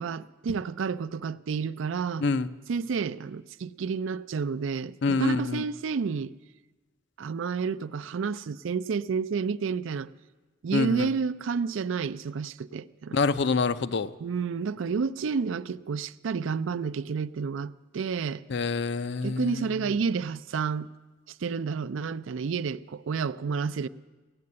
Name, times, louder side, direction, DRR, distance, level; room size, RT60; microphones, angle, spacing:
voice 1, 0.0-2.3 2.7-6.3 7.2-10.1 10.6-13.2 14.2-18.4 19.2-20.9 21.3-23.9, right 5 dB, 75° right, 0.4 m, -30 dB
voice 2, 5.0-5.7 10.7-11.1 13.1-14.1 18.5-19.9, left 4 dB, 60° left, 0.5 m, -26 dB
16.5 x 7.6 x 9.6 m
head